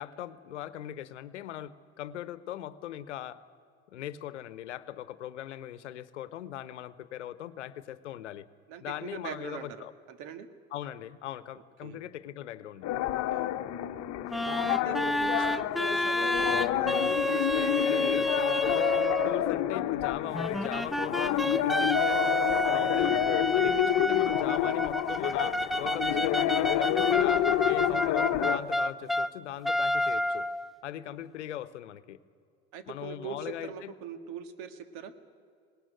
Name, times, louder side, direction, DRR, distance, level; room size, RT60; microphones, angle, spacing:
voice 1, 0.0-3.4 3.9-8.5 8.8-9.9 10.7-12.9 19.2-30.5 30.8-32.2 32.9-33.9, left 11 dB, 90° left, 16 dB, 0.9 m, -40 dB
voice 2, 8.7-9.8 10.1-10.5 11.8-12.0 13.1-13.5 14.7-18.1 32.7-35.1, right 7 dB, 65° right, 10 dB, 1.8 m, -42 dB
sound 1, 12.8-28.6, left 13 dB, 50° left, 1.1 m, -29 dB
sound 2, 14.3-19.4 20.3-29.3 29.6-30.7, left 1 dB, ahead, 0.5 m, -29 dB
19.5 x 19.0 x 9.2 m, 2.2 s
hypercardioid pair, 80°, 34 cm